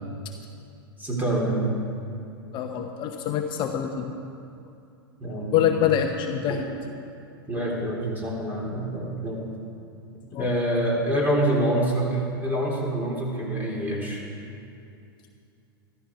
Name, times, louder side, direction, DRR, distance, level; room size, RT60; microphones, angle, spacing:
voice 1, 1.0-1.7 5.2-5.5 7.5-9.4 10.4-14.2, right 1 dB, 15° right, -3 dB, 3.9 m, -26 dB
voice 2, 2.5-4.1 5.5-6.7 10.3-10.5, left 9 dB, 40° left, 4 dB, 0.9 m, -25 dB
14.0 x 13.5 x 4.8 m, 2.6 s
hypercardioid pair, 105°, 13 cm